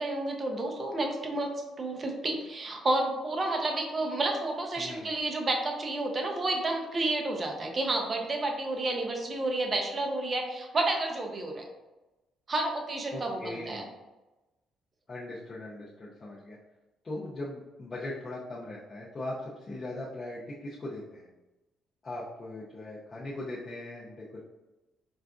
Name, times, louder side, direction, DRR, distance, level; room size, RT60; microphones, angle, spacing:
voice 1, 0.0-11.6 12.5-13.9, right 2 dB, 25° right, 2 dB, 0.5 m, -30 dB
voice 2, 4.8-5.1 13.1-13.9 15.1-16.6 17.0-21.3 22.0-24.4, left 2 dB, 25° left, -7 dB, 0.5 m, -39 dB
4.7 x 2.5 x 2.3 m, 1.1 s
cardioid pair, 155°, 0 cm